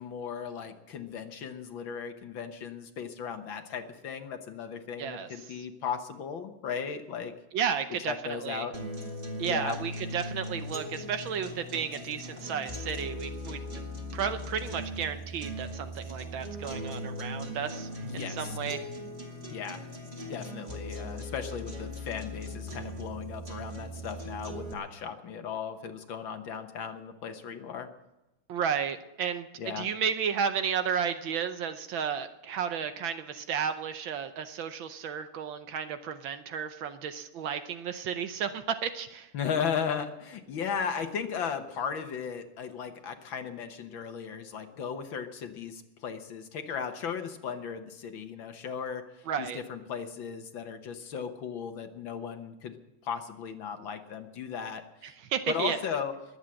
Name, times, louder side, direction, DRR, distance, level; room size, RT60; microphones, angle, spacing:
voice 1, 0.0-7.3 8.1-8.7 9.5-9.8 18.0-18.6 19.5-19.8 20.2-27.9 29.6-29.9 39.3-55.1 55.5-56.1, left 7 dB, 65° left, 7 dB, 1.8 m, -36 dB
voice 2, 5.0-5.3 5.6-5.7 7.5-8.7 9.4-13.6 14.1-18.8 28.5-39.3 49.3-49.6 55.0-55.8, right 7 dB, 70° right, 9 dB, 1.5 m, -33 dB
sound 1, 8.7-24.7, equal, 20° right, 2.3 m, -39 dB
21.0 x 8.1 x 7.6 m, 0.95 s
omnidirectional pair, 2.4 m